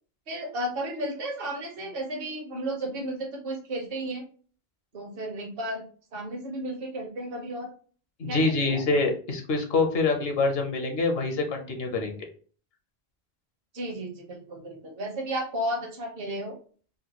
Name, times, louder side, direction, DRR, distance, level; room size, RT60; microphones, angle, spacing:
voice 1, 0.3-4.2 4.9-5.8 6.1-7.7 8.3-8.8 13.7-16.5, right 1 dB, 65° right, 1 dB, 1.1 m, -33 dB
voice 2, 8.2-12.2, left 3 dB, 75° left, 3 dB, 1.0 m, -25 dB
3.8 x 2.2 x 2.9 m, 0.42 s
omnidirectional pair, 1.0 m